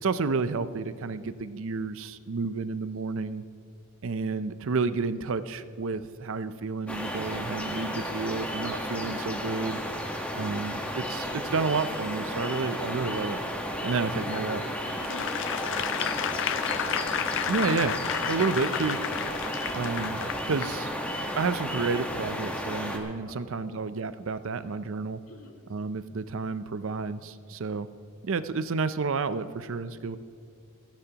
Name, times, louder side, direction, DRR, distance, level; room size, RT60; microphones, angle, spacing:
voice 1, 0.0-3.4 4.0-9.8 10.4-13.4 13.8-14.6 17.5-18.0 18.3-19.0 19.7-20.9 21.4-25.2 25.7-27.9 28.2-30.2, right 4 dB, 65° right, 13 dB, 0.5 m, -30 dB
sound 1, 6.9-23.0, equal, 5° left, 1.3 m, -33 dB
voice 2, 10.3-10.7 14.1-16.1 23.3-23.8 25.3-25.5, left 3 dB, 80° left, 0 dB, 2.0 m, -44 dB
Applause / Crowd, 15.0-20.8 21.3-21.4, left 9 dB, 60° left, 0.5 m, -31 dB
29.0 x 10.5 x 2.9 m, 2.3 s
head